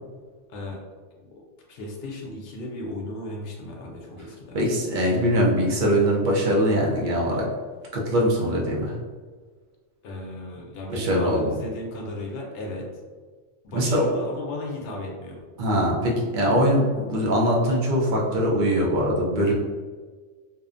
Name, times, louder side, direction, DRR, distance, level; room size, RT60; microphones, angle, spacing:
voice 1, 1.7-4.6 10.0-12.9 13.6-15.4, left 1 dB, 65° left, 0 dB, 0.7 m, -35 dB
voice 2, 4.5-7.5 7.9-9.0 10.9-11.5 13.7-14.1 15.6-19.5, equal, 55° right, -3 dB, 0.6 m, -22 dB
2.6 x 2.1 x 2.4 m, 1.5 s
omnidirectional pair, 1.2 m